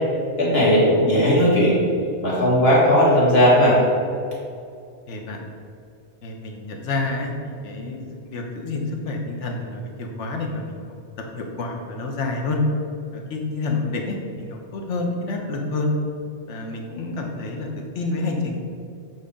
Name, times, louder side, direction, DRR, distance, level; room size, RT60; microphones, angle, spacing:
voice 1, 0.4-1.8 2.2-3.8, equal, 60° left, -6 dB, 2.1 m, -16 dB
voice 2, 5.1-5.4 6.2-10.8 11.3-12.6 13.1-15.9 16.5-17.7 17.9-18.5, left 3 dB, 80° left, 2 dB, 1.3 m, -28 dB
7.7 x 4.0 x 5.0 m, 2.4 s
omnidirectional pair, 1.2 m